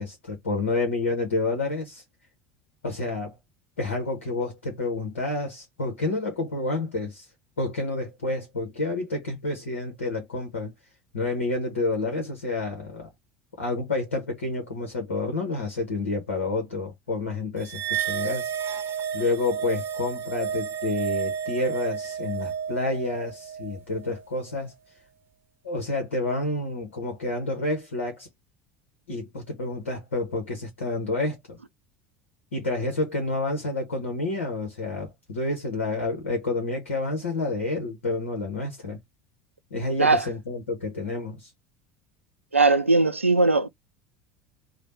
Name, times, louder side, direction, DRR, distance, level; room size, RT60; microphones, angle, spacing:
voice 1, 0.0-2.0 2.8-3.4 3.8-7.3 7.6-10.7 11.1-13.1 13.6-24.7 25.6-28.3 29.1-31.6 32.5-39.0 39.7-41.5, left 2 dB, 75° left, 1.2 m, -29 dB
sound 1, 17.7-24.3, right 8 dB, 35° right, 0.7 m, -31 dB
voice 2, 42.5-43.7, right 3 dB, 85° right, 0.4 m, -19 dB
3.3 x 2.4 x 4.1 m
figure-of-eight pair, 70°, 7 cm